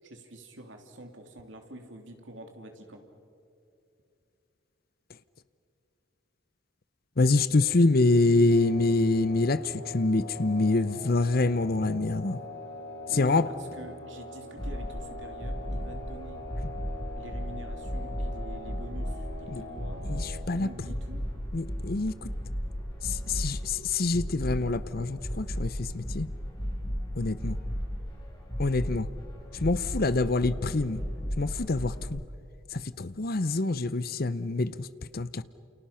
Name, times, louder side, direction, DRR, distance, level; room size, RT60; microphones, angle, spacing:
voice 1, 0.0-3.0 13.1-16.4 17.2-20.0 20.5-21.3, right 1 dB, 65° right, 3.0 m, -46 dB
voice 2, 7.2-12.4 13.1-13.5 19.5-19.6 20.1-20.7 21.5-22.3 23.0-26.3 27.2-27.6 28.6-29.1 29.5-31.0 31.4-32.2 32.7-34.9 35.1-35.4, left 2 dB, 50° left, 0.8 m, -26 dB
sound 1, 8.5-20.4, left 2 dB, 75° left, 4.9 m, -43 dB
sound 2, 14.6-32.0, equal, 25° left, 5.0 m, -35 dB
29.5 x 29.0 x 5.8 m
head